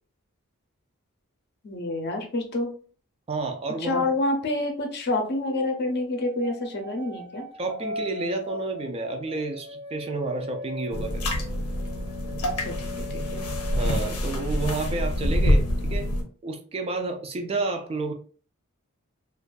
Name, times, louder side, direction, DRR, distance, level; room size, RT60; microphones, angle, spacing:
voice 1, 1.6-2.7 3.8-7.4 12.4-13.5, left 2 dB, 50° left, 4 dB, 0.6 m, -28 dB
voice 2, 3.3-4.1 7.6-11.2 13.7-16.1 16.4-18.1, right 3 dB, 25° right, 4 dB, 0.3 m, -30 dB
sound 1, 5.4-14.5 14.8-15.1, left 1 dB, 80° right, 1.0 m, -40 dB
sound 2, 10.9-16.2, left 1 dB, 90° left, 0.6 m, -26 dB
2.4 x 2.2 x 2.2 m, 0.42 s
head